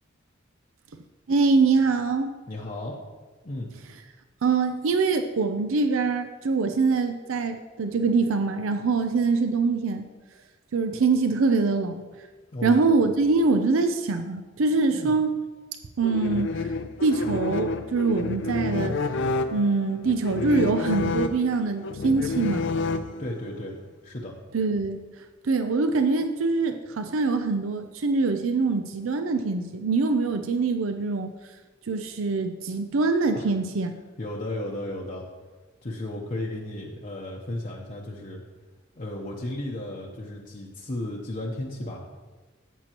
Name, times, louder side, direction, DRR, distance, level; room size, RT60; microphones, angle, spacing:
voice 1, 1.3-2.3 4.4-10.1 10.7-12.0 12.6-15.3 16.0-16.7 17.0-19.0 19.5-22.6 24.5-25.0 25.4-31.3 31.9-33.9, right 4 dB, 80° right, 7 dB, 0.5 m, -24 dB
voice 2, 2.5-3.0 3.4-3.7 12.5-13.1 14.9-15.1 23.2-23.7 24.0-24.3 33.3-33.5 34.2-35.2 35.8-38.4 39.0-42.0, left 1 dB, 40° left, -3 dB, 0.9 m, -34 dB
sound 1, 16.0-23.5, left 3 dB, 60° left, 0.5 m, -29 dB
13.5 x 7.4 x 3.0 m, 1.3 s
head